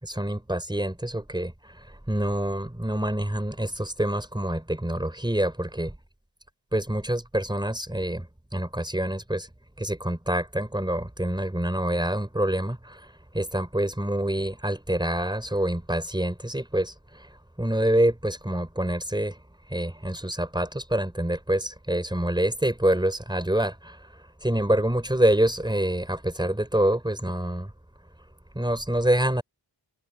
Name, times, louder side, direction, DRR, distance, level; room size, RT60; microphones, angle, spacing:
voice 1, 0.0-5.9 6.7-8.3 8.5-9.5 9.8-19.4 19.7-27.7 28.5-29.4, right 1 dB, 10° right, 4.1 m, -26 dB
wide cardioid pair, 105°, 43 cm